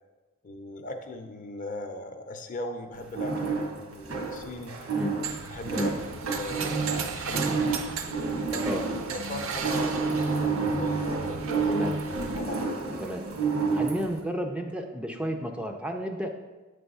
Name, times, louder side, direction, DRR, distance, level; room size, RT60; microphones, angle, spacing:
voice 1, 0.4-4.8 5.5-7.7 8.5-11.9 12.3-12.9, left 1 dB, 40° left, 5 dB, 0.6 m, -39 dB
sound 1, 2.9-14.2, right 4 dB, 85° right, 1.3 m, -30 dB
sound 2, 5.2-12.4, right 5 dB, 65° right, 0.6 m, -36 dB
voice 2, 13.7-16.3, equal, 5° right, 4 dB, 0.4 m, -31 dB
8.4 x 3.4 x 5.4 m, 1.2 s
head